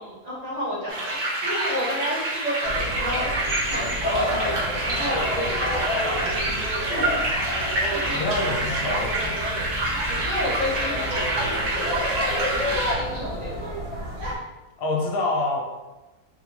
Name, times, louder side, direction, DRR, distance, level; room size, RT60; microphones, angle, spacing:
voice 1, 0.0-6.6 6.9-7.2 7.5-8.3 9.9-12.2 12.5-13.7, equal, 30° right, -8 dB, 1.1 m, -31 dB
sound 1, 0.9-12.9, right 2 dB, 80° right, 1.3 m, -27 dB
sound 2, 2.6-14.3, left 1 dB, 55° right, 1.2 m, -30 dB
voice 2, 8.1-9.4 14.8-15.6, left 2 dB, 55° left, 0 dB, 0.7 m, -26 dB
3.7 x 2.4 x 2.9 m, 1.1 s
omnidirectional pair, 1.7 m